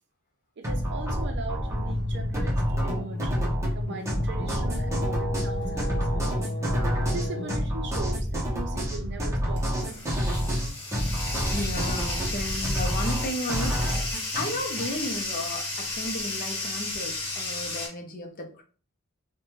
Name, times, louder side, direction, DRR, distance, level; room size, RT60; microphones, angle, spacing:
sound 1, 0.6-14.9, equal, 15° right, 0.6 m, -28 dB
voice 1, 0.6-3.4 3.7-6.4 7.1-10.1 11.8-12.6, right 3 dB, 50° right, 4 dB, 0.5 m, -40 dB
sound 2, 1.7-7.6, left 1 dB, 85° left, 0.7 m, -32 dB
Bathtub (filling or washing), 8.7-17.9, left 2 dB, 25° left, 1.0 m, -34 dB
voice 2, 11.5-13.8 14.3-18.6, left 1 dB, 40° left, 2 dB, 0.6 m, -34 dB
2.6 x 2.1 x 3.1 m, 0.38 s
head